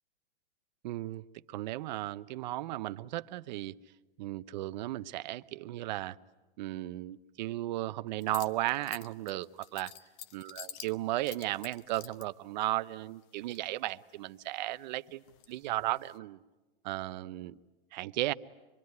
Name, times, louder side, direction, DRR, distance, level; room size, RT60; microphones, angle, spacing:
voice 1, 0.8-1.2 1.5-3.7 4.2-6.2 6.6-9.9 10.3-16.4 16.8-17.6 17.9-18.3, right 16 dB, 45° right, 13 dB, 0.8 m, -35 dB
sound 1, 8.2-12.2 13.2-14.0 14.4-16.2, left 10 dB, 35° left, 1.0 m, -49 dB
25.5 x 23.0 x 9.6 m, 1.1 s
hypercardioid pair, 145°, 30 cm